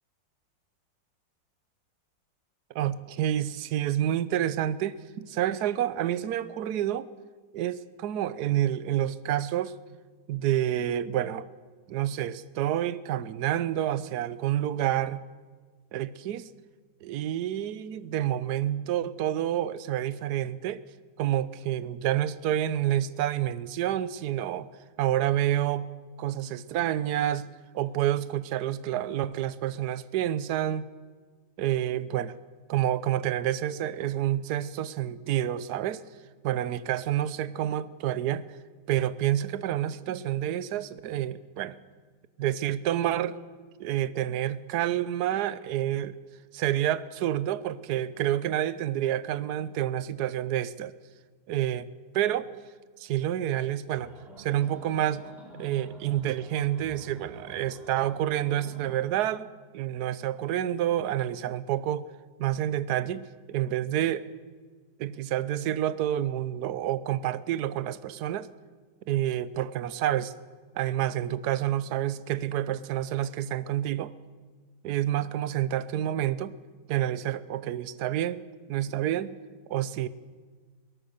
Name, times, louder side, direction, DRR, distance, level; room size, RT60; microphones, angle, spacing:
voice 1, 2.7-7.1 7.5-9.7 10.3-11.5 11.9-15.2 15.9-16.5 17.0-20.8 21.2-24.7 25.0-25.9 26.2-27.5 27.7-30.9 31.6-32.3 32.7-36.0 36.4-38.4 38.9-41.8 42.4-43.4 43.8-46.1 46.5-50.9 51.5-51.9 52.1-52.5 53.0-54.1 54.4-55.2 55.6-59.5 59.7-62.0 62.4-64.3 65.0-68.5 69.1-70.3 70.7-74.1 74.8-76.6 76.9-78.4 78.7-79.4 79.7-80.1, right 12 dB, 65° right, 16 dB, 1.2 m, -28 dB
sound 1, 53.9-59.0, right 1 dB, ahead, 4.6 m, -46 dB
22.0 x 18.5 x 6.6 m, 1.5 s
omnidirectional pair, 2.0 m